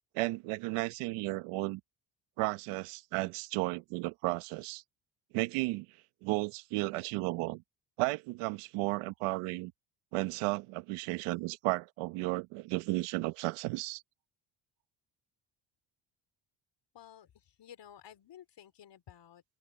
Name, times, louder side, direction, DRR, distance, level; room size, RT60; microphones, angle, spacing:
voice 1, 0.1-1.8 2.4-4.8 5.3-5.9 6.2-7.6 8.0-9.7 10.1-14.0, right 21 dB, 80° right, 1.3 m, -33 dB
voice 2, 16.9-19.4, left 10 dB, 55° left, 4.3 m, -54 dB
open air
supercardioid pair, 75°, 50 cm